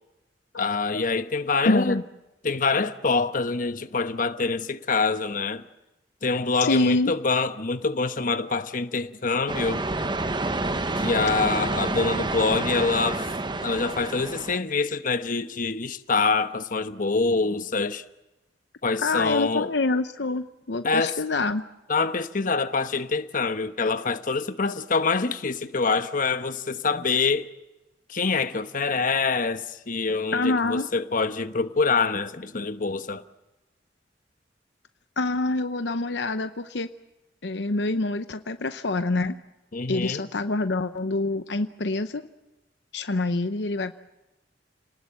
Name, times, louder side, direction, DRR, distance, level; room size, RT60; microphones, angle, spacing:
voice 1, 0.6-2.0 2.4-5.6 6.2-9.9 10.9-13.3 13.6-18.0 18.8-19.7 20.8-21.2 21.9-27.5 28.1-33.2 39.7-40.2, left 4 dB, 50° left, 1.1 m, -25 dB
voice 2, 1.6-2.0 6.6-7.1 19.0-21.6 30.3-30.9 35.2-36.9 37.4-39.4 39.9-42.2 42.9-43.9, left 2 dB, 70° left, 0.8 m, -26 dB
sound 1, 9.5-14.6, right 2 dB, 25° right, 1.0 m, -28 dB
30.0 x 19.5 x 7.6 m
head